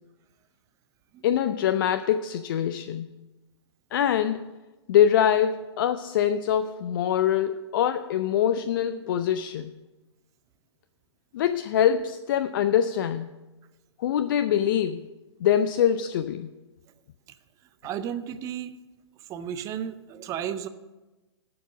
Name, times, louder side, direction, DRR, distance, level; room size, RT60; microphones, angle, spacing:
voice 1, 1.2-3.1 3.9-4.5 4.9-9.7 11.3-13.3 14.0-15.1 15.4-16.5, left 9 dB, 45° left, 11 dB, 0.4 m, -24 dB
voice 2, 17.8-18.7 19.3-20.7, right 9 dB, 20° right, 11 dB, 0.5 m, -33 dB
12.0 x 4.7 x 6.9 m, 1.1 s
hypercardioid pair, 125°, 15 cm